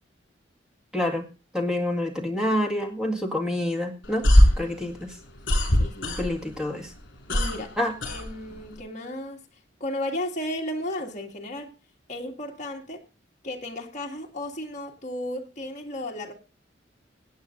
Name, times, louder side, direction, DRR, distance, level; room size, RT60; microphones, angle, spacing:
voice 1, 0.9-1.3 1.5-4.3 4.6-5.2 6.2-6.9 7.8-7.9, left 1 dB, 5° right, 2.0 m, -27 dB
sound 1, 4.0-6.6 6.9-8.8, equal, 60° left, 5.4 m, -21 dB
voice 2, 5.8-6.2 7.3-7.8 8.1-9.4 9.8-11.7 12.1-13.0 13.4-16.3, left 1 dB, 40° left, 2.2 m, -34 dB
25.0 x 8.7 x 2.6 m
head